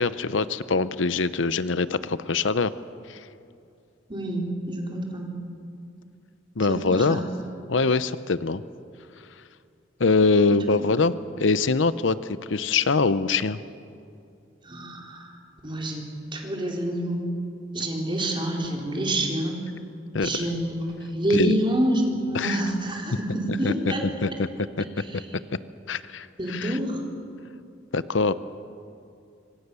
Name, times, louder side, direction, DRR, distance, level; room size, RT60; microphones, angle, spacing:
voice 1, 0.0-2.7 3.1-3.2 6.6-7.2 7.7-8.6 10.0-13.6 20.1-20.3 21.3-21.5 22.3-22.6 23.6-23.7 24.2-24.5 24.8-24.9 25.1-25.2 25.9-26.8 27.9-28.3, left 4 dB, 75° left, 14 dB, 0.8 m, -23 dB
voice 2, 4.1-5.3 6.7-7.2 11.0-11.2 14.6-15.4 15.6-17.3 17.7-19.6 20.2-24.1 25.0-25.2 26.4-27.0, right 1 dB, 25° right, 0 dB, 4.1 m, -27 dB
26.0 x 25.5 x 7.0 m, 2.5 s
head